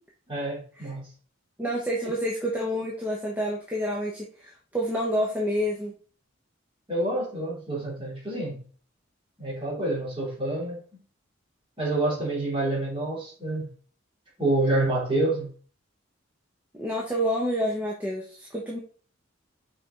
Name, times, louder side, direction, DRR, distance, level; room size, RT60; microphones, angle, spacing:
voice 1, 0.3-1.1 6.9-8.6 9.4-10.8 11.8-13.7 14.4-15.5, right 2 dB, 25° right, 3.1 m, -27 dB
voice 2, 1.6-5.9 16.8-18.8, equal, 10° right, 0.9 m, -28 dB
6.0 x 4.4 x 3.7 m
head